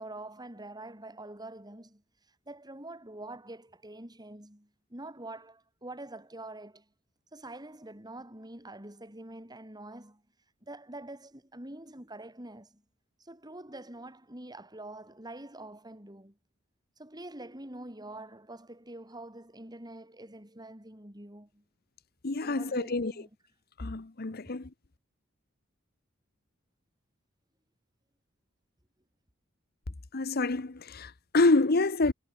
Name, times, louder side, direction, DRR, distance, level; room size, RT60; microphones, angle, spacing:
voice 1, 0.0-2.0 2.5-6.9 7.3-10.2 10.6-12.8 13.2-16.4 17.0-21.6 22.4-23.3, right 1 dB, 20° right, 7.5 m, -45 dB
voice 2, 22.2-23.1 23.8-24.7 30.1-32.1, left 3 dB, 50° left, 1.0 m, -27 dB
head